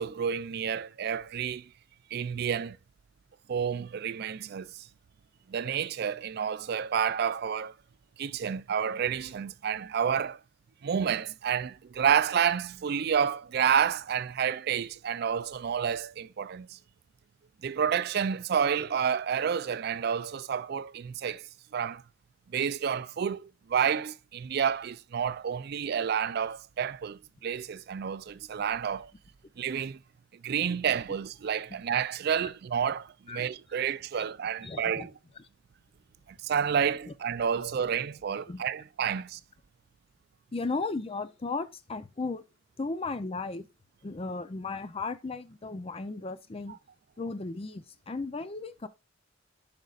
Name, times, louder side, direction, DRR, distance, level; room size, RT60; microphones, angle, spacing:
voice 1, 0.0-1.7 2.1-2.8 3.5-4.8 5.5-7.7 8.2-10.4 10.8-16.8 17.6-21.5 21.7-22.0 22.5-29.1 29.6-30.0 30.4-35.1 36.3-39.4, right 7 dB, 55° right, 0.4 m, -29 dB
voice 2, 34.6-35.1 37.1-37.2 37.8-37.9 38.5-38.6 40.5-42.4 42.8-43.7 44.0-46.8 47.2-48.9, left 3 dB, 30° left, 0.5 m, -35 dB
10.5 x 5.2 x 2.4 m
head